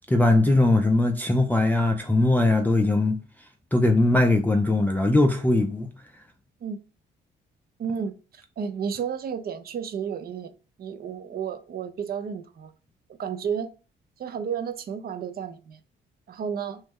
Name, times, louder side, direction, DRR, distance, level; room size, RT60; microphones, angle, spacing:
voice 1, 0.1-3.2 3.7-5.9, left 2 dB, 10° left, 0.3 m, -20 dB
voice 2, 7.8-10.5 10.8-12.7 13.1-13.7 14.2-15.8 16.3-16.8, right 7 dB, 50° right, 0.5 m, -32 dB
3.1 x 2.1 x 3.4 m
cardioid pair, 90°, 20 cm